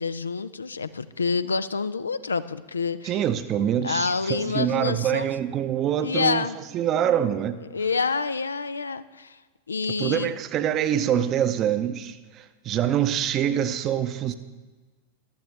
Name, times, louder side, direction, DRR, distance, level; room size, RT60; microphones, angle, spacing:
voice 1, 0.0-3.2 3.8-5.3 6.0-6.6 7.7-9.4 9.7-10.3, left 4 dB, 75° left, 14 dB, 0.4 m, -27 dB
voice 2, 3.0-6.5 6.7-7.6 10.0-14.3, right 10 dB, 35° right, 11 dB, 0.7 m, -25 dB
14.5 x 12.0 x 3.4 m, 1.3 s
figure-of-eight pair, 90°, 0 cm